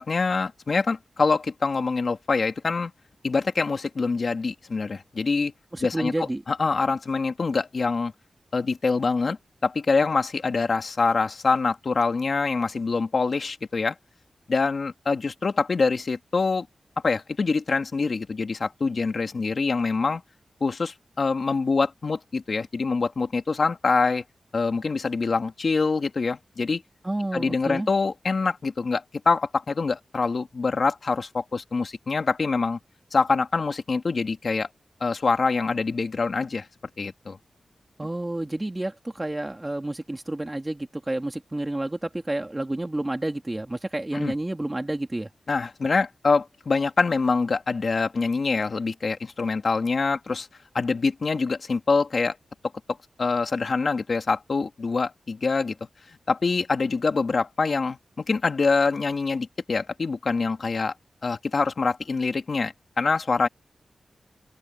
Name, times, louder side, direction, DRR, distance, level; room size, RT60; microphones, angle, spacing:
voice 1, 0.0-2.9 3.2-5.5 5.8-6.1 6.5-8.1 8.5-9.4 9.6-13.9 14.5-16.7 17.0-20.2 20.6-24.2 24.5-26.8 27.3-32.8 33.1-34.7 35.0-36.7 37.0-37.4 44.1-44.3 45.5-50.5 50.7-52.4 53.2-55.8 56.3-60.9 61.2-63.5, left 4 dB, 55° left, 2.5 m, -25 dB
voice 2, 5.7-6.4 27.0-27.9 38.0-45.3, right 1 dB, 20° right, 2.3 m, -30 dB
open air
wide cardioid pair, 95°, 0 cm